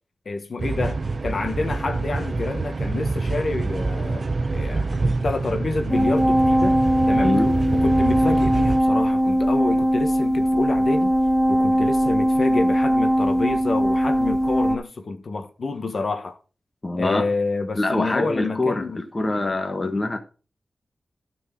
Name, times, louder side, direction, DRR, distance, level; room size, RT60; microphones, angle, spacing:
voice 1, 0.2-6.8 7.1-7.4 7.7-11.1 11.5-16.4 17.0-19.0, left 3 dB, 55° left, 1.4 m, -28 dB
sound 1, 0.6-8.8, right 3 dB, 45° right, 0.8 m, -26 dB
sound 2, 5.9-14.8, equal, 15° right, 3.1 m, -20 dB
voice 2, 7.2-7.5 16.8-17.2 17.7-20.2, left 2 dB, 30° left, 1.3 m, -24 dB
13.0 x 4.6 x 5.9 m
wide cardioid pair, 105°, 0 cm